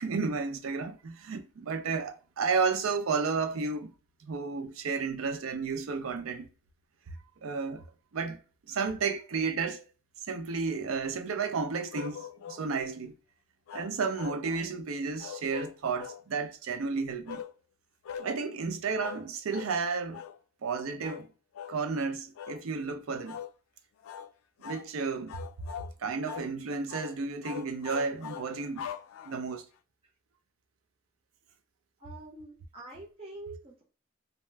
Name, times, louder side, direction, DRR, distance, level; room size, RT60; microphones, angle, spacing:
voice 1, 0.0-3.9 4.2-6.5 7.4-7.8 8.1-8.4 8.7-9.8 10.3-13.1 13.7-17.4 18.2-20.2 20.6-21.3 21.7-23.4 24.6-25.4 26.0-28.9 29.3-29.7, right 4 dB, 80° right, 0.5 m, -32 dB
sound 1, 11.9-12.7 13.7-14.7 15.2-16.2 17.3-17.5 18.0-18.3 19.0-19.3 19.5-19.8 20.1-20.4 21.0-21.3 21.5-21.8 22.4-22.6 23.3-23.5 24.0-24.3 24.6-24.9 25.3-25.9 26.3-26.5 26.9-27.1 27.4-29.6, left 8 dB, 80° left, 0.3 m, -42 dB
voice 2, 32.0-33.8, right 2 dB, 30° right, 0.7 m, -46 dB
2.7 x 2.1 x 3.2 m
head